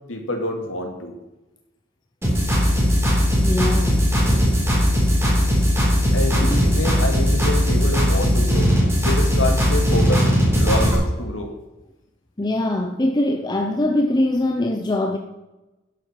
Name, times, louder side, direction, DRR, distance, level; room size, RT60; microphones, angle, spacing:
voice 1, 0.1-1.1 2.7-2.8 6.1-8.7 9.0-11.5, left 1 dB, 90° left, 3 dB, 2.3 m, -27 dB
sound 1, 2.2-10.9, equal, 15° right, 3.6 m, -18 dB
voice 2, 3.4-4.1 6.5-6.6 12.4-15.2, left 1 dB, 20° left, 4 dB, 0.7 m, -22 dB
11.0 x 7.9 x 5.8 m, 1.0 s
head